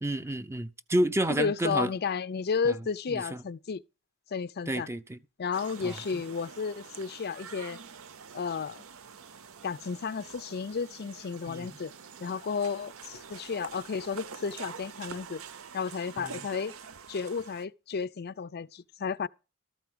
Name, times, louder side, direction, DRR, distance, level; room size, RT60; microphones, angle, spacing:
voice 1, 0.0-1.9 2.6-2.8 3.1-3.4 4.7-5.2 5.8-6.2 11.5-11.8 16.2-16.4, right 1 dB, 10° right, 0.6 m, -30 dB
voice 2, 1.3-3.8 4.3-4.9 5.4-7.8 8.3-8.8 9.6-11.9 12.2-15.4 15.7-16.7 17.1-19.3, left 5 dB, 45° left, 0.5 m, -32 dB
sound 1, 5.5-17.6, right 6 dB, 65° right, 0.8 m, -46 dB
13.5 x 4.6 x 7.7 m
head